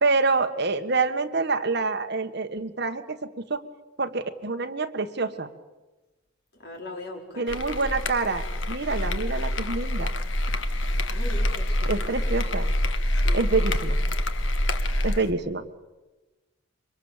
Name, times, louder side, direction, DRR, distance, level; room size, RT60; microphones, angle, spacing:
voice 1, 0.0-3.6 4.0-5.5 7.4-10.1 11.8-12.8 13.3-14.0 15.0-15.6, right 3 dB, 55° right, 7 dB, 1.6 m, -27 dB
voice 2, 6.6-7.6 11.1-11.9 13.1-13.5, left 1 dB, 55° left, 2 dB, 4.8 m, -39 dB
sound 1, 7.5-15.3, left 1 dB, 70° left, 1.5 m, -26 dB
27.0 x 24.5 x 7.5 m, 1.1 s
head